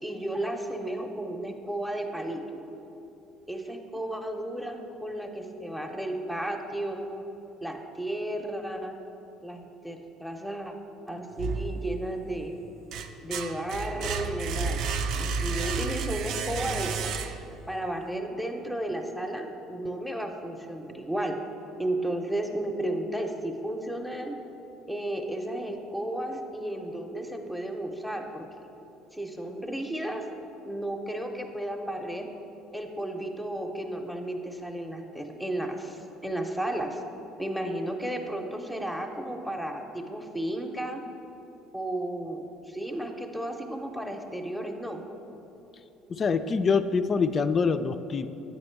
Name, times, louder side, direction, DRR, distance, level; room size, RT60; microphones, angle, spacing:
voice 1, 0.0-2.6 3.5-7.2 7.6-9.0 9.4-10.7 11.1-12.5 13.2-14.8 15.2-17.1 17.7-21.4 21.8-24.3 24.9-28.4 29.1-30.2 30.7-32.3 32.7-37.0 37.4-41.0 41.7-45.1, right 1 dB, ahead, 3 dB, 0.7 m, -33 dB
sound 1, 11.4-12.2 12.6-17.7, right 5 dB, 65° right, 0.4 m, -31 dB
voice 2, 46.1-48.3, left 5 dB, 40° left, 11 dB, 0.3 m, -25 dB
8.5 x 4.2 x 4.5 m, 2.9 s
hypercardioid pair, 60°, 0 cm